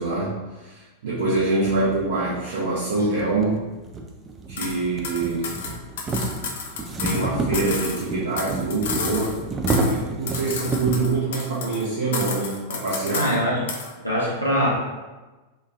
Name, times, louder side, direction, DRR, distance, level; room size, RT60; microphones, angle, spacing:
voice 1, 0.0-3.6 4.5-5.5 7.0-9.4 9.8-13.3, right 3 dB, 60° right, -8 dB, 0.6 m, -25 dB
sound 1, 2.3-2.4 3.1-11.1, right 2 dB, 20° right, 0.3 m, -29 dB
sound 2, 4.6-4.8 5.0-7.3 7.5-9.4 9.7-10.0 10.3-11.8 12.1-13.4 13.7-13.9, left 5 dB, 55° left, 0.4 m, -31 dB
voice 2, 13.1-13.6 14.0-14.7, equal, 90° left, -6 dB, 0.8 m, -22 dB
3.0 x 2.2 x 2.4 m, 1.2 s
figure-of-eight pair, 90°, 0 cm